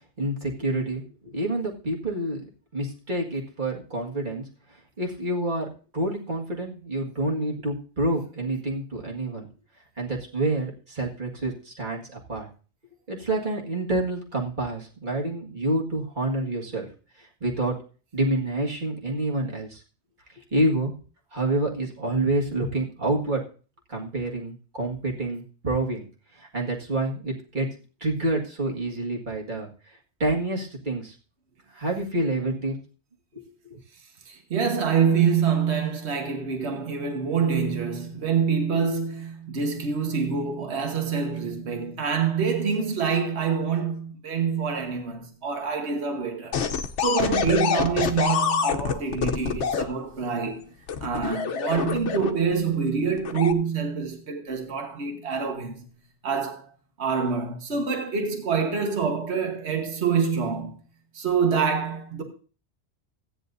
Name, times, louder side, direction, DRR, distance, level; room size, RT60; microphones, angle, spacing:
voice 1, 0.2-2.4 2.7-4.4 5.0-5.7 5.9-9.5 10.0-12.5 13.1-16.9 17.2-17.8 18.1-19.8 20.3-20.9 21.3-23.4 23.9-26.0 26.3-27.7 28.0-31.2 31.7-32.8 33.3-33.8, right 1 dB, 45° right, 2.0 m, -28 dB
voice 2, 34.3-46.6 47.0-50.6 51.0-55.8 56.2-56.7 57.0-60.8 61.1-62.2, right 6 dB, 70° right, 1.6 m, -26 dB
sound 1, 46.5-49.8 50.9-52.5 53.2-53.5, left 6 dB, 90° left, 1.1 m, -25 dB
16.0 x 9.8 x 2.6 m
omnidirectional pair, 1.2 m